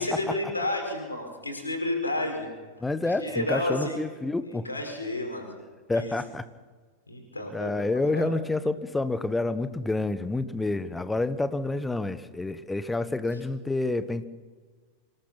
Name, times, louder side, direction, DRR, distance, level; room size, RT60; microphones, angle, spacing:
voice 1, 0.0-2.5 3.0-4.0 4.5-5.5 5.9-6.2 7.1-8.4, left 1 dB, 80° left, 3 dB, 5.0 m, -31 dB
voice 2, 2.8-4.7 5.9-6.4 7.5-14.2, left 2 dB, 10° left, 14 dB, 1.2 m, -28 dB
26.0 x 19.0 x 5.7 m, 1.5 s
figure-of-eight pair, 90°, 0 cm